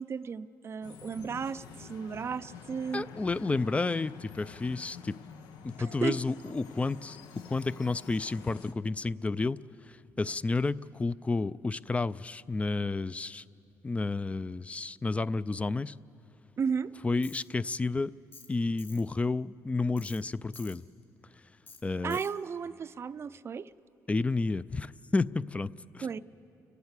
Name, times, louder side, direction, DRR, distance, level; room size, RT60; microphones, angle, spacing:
voice 1, 0.0-3.0 6.0-6.1 16.6-16.9 22.0-23.7 26.0-26.2, right 6 dB, 40° right, 13 dB, 0.5 m, -34 dB
sound 1, 0.8-8.7, left 6 dB, 85° left, 1.1 m, -49 dB
voice 2, 2.9-5.2 5.6-9.6 9.8-13.4 13.8-16.0 17.0-18.1 18.5-20.8 21.8-22.2 24.1-26.1, left 3 dB, 20° left, 18 dB, 0.4 m, -31 dB
Tools, 17.2-17.4 18.3-18.5 18.8-19.0 20.0-20.2 20.5-20.8 21.7-21.8 22.1-22.3, left 4 dB, 40° left, 4.7 m, -50 dB
29.5 x 12.0 x 8.2 m, 2.6 s
cardioid pair, 85°, 7 cm